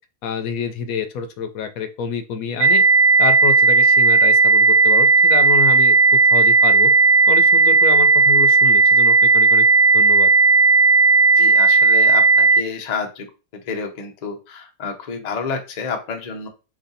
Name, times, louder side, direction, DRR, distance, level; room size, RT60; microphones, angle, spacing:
voice 1, 0.2-2.8 3.2-6.9 7.3-9.6 9.9-10.3, left 6 dB, 75° left, 8 dB, 1.0 m, -28 dB
sound 1, 2.6-12.6, right 4 dB, 60° right, 1.0 m, -14 dB
voice 2, 11.4-13.3 13.5-16.5, left 5 dB, 50° left, 3 dB, 0.5 m, -29 dB
3.1 x 2.7 x 3.9 m, 0.32 s
omnidirectional pair, 1.6 m